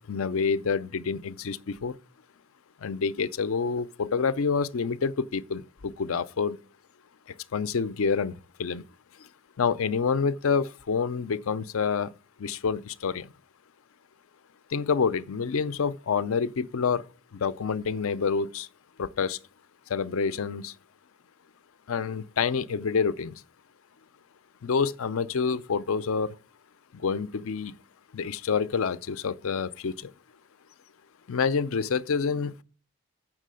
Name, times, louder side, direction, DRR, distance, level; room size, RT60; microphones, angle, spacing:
voice 1, 0.0-1.9 2.8-6.6 7.5-8.8 9.6-12.1 12.4-13.3 14.7-17.0 17.4-18.7 19.0-19.4 19.9-20.7 21.9-23.3 24.6-26.3 27.0-27.7 28.1-29.9 31.3-32.6, left 5 dB, 65° left, 0.5 m, -27 dB
7.5 x 6.1 x 6.3 m
head